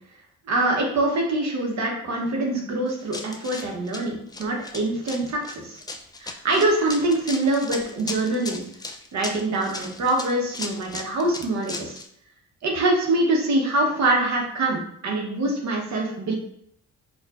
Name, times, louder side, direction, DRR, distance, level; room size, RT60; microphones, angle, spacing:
voice 1, 0.5-5.8 6.2-8.6 9.1-12.0 12.6-16.3, right 2 dB, 65° right, 0 dB, 0.9 m, -24 dB
Run, 2.9-12.1, left 3 dB, 15° left, 0.3 m, -36 dB
4.5 x 2.4 x 2.4 m, 0.67 s
cardioid pair, 90°, 30 cm